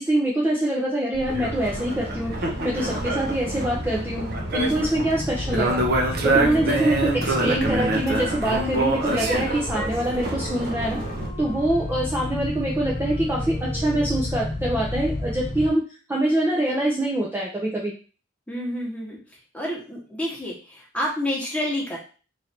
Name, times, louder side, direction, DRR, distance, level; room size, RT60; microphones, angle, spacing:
voice 1, 0.0-2.3 2.6-4.3 4.5-5.8 6.2-11.0 11.4-17.9, right 1 dB, 10° right, -4 dB, 0.5 m, -24 dB
sound 1, 1.1-15.7, left 1 dB, 55° left, 0.9 m, -32 dB
sound 2, 1.3-11.3, right 2 dB, 55° right, 0.8 m, -27 dB
voice 2, 4.5-4.9 6.3-6.7 18.5-19.2 19.5-22.0, left 1 dB, 5° left, -3 dB, 1.1 m, -30 dB
Wind instrument woodwind instrument, 6.1-14.5, left 1 dB, 35° left, 0.6 m, -43 dB
3.2 x 2.6 x 4.3 m, 0.37 s
head